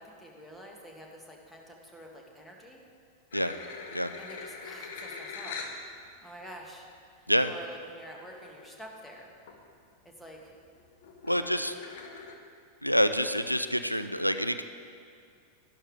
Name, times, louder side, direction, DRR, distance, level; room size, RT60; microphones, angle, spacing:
voice 1, 0.0-2.8 4.2-5.6 6.2-6.9 7.2-9.3 10.0-10.5 11.3-11.5 11.8-12.0, equal, 5° left, 0 dB, 1.7 m, -48 dB
sound 1, 3.3-5.8 6.5-6.6 8.0-8.1 8.3-8.7 9.1-9.6 10.0-12.3, left 4 dB, 55° left, 1.1 m, -43 dB
voice 2, 11.3-11.7 12.8-14.6, equal, 90° right, 10 dB, 0.4 m, -27 dB
12.5 x 12.0 x 3.6 m, 2.3 s
figure-of-eight pair, 90°, 0 cm